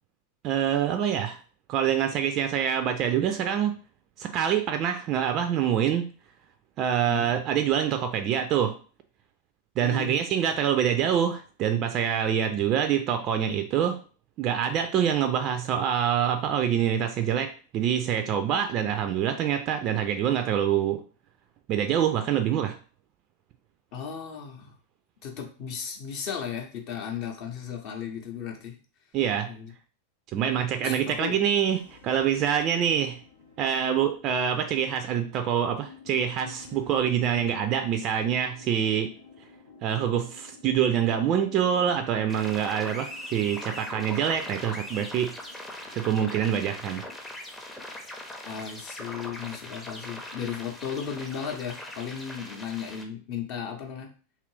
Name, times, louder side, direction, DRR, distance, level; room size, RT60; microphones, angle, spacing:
voice 1, 0.4-1.4 1.7-3.8 4.2-6.0 6.8-8.8 9.8-14.0 14.4-21.0 21.7-22.8 29.1-29.5 30.3-33.2 33.6-39.1 39.8-45.3 45.9-47.0, right 9 dB, 35° right, 7 dB, 0.3 m, -25 dB
voice 2, 9.8-10.2 23.9-24.7 25.2-28.8 29.5-29.7 30.8-31.4 48.4-54.1, left 7 dB, 45° left, 2 dB, 0.7 m, -35 dB
sound 1, 31.6-47.1, left 5 dB, 75° left, 0.7 m, -52 dB
sound 2, 42.3-53.0, left 1 dB, 10° left, 0.6 m, -40 dB
2.8 x 2.5 x 3.2 m, 0.39 s
figure-of-eight pair, 90°, 0 cm